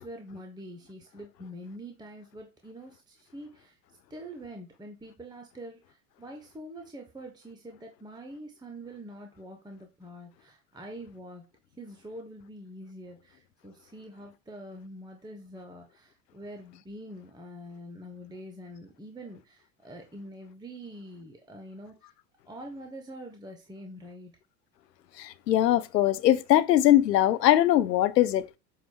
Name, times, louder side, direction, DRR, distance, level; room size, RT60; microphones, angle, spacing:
voice 1, 0.0-3.8 4.1-11.4 11.8-22.1 22.4-24.3, right 1 dB, 10° right, 1.1 m, -45 dB
voice 2, 25.2-28.6, left 13 dB, 75° left, 0.7 m, -21 dB
7.9 x 2.7 x 4.8 m
figure-of-eight pair, 75°, 50 cm